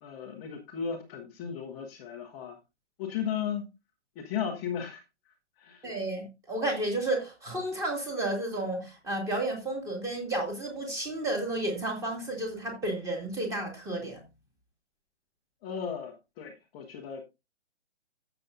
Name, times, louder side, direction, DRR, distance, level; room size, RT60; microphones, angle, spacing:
voice 1, 0.0-2.6 3.0-3.6 4.2-5.0 5.6-6.0 15.6-17.2, left 7 dB, 10° left, 0.7 m, -35 dB
voice 2, 5.8-14.2, right 1 dB, 10° right, 2.2 m, -32 dB
13.5 x 6.8 x 2.6 m
hypercardioid pair, 160°, 34 cm